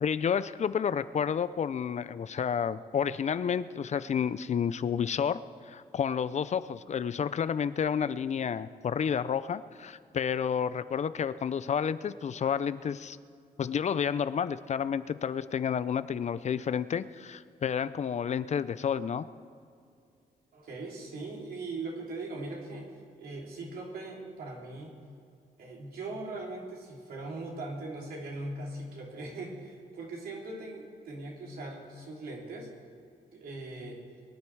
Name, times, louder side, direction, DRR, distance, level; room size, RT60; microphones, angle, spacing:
voice 1, 0.0-5.4 5.7-13.2 13.6-19.3, left 7 dB, 50° left, 15 dB, 0.5 m, -30 dB
voice 2, 20.5-24.9 25.6-32.7 33.3-34.0, right 2 dB, 75° right, -2 dB, 3.1 m, -40 dB
22.5 x 9.6 x 4.7 m, 2.3 s
cardioid pair, 80°, 16 cm